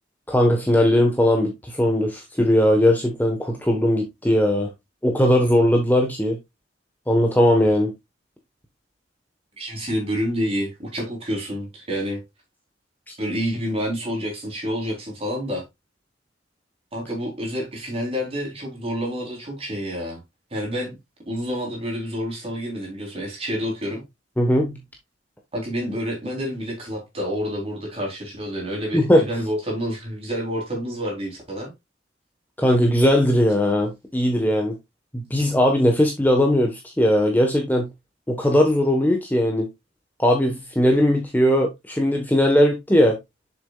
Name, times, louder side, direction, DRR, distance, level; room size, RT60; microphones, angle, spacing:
voice 1, 0.3-4.7 5.0-6.4 7.1-7.9 24.4-24.8 28.9-29.2 32.6-34.7 35.1-37.9 38.3-39.7 40.2-43.2, equal, 10° left, 1.2 m, -19 dB
voice 2, 9.6-12.2 13.2-15.6 16.9-20.2 20.5-21.0 21.3-24.0 25.5-31.7, equal, 30° right, 3.7 m, -28 dB
7.2 x 6.8 x 2.3 m
head